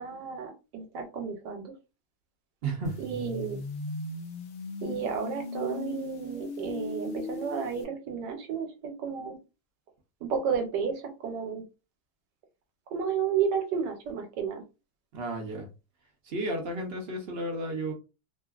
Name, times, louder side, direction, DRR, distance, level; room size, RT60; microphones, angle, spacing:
voice 1, 0.0-1.6 3.0-3.6 4.8-9.4 10.2-11.6 12.9-14.6, right 6 dB, 85° right, 1.3 m, -32 dB
voice 2, 2.6-3.0 15.1-15.7 16.2-17.9, right 2 dB, 60° right, 0.7 m, -33 dB
sound 1, 2.8-7.8, left 2 dB, 90° left, 0.5 m, -38 dB
2.7 x 2.5 x 2.3 m
omnidirectional pair, 1.8 m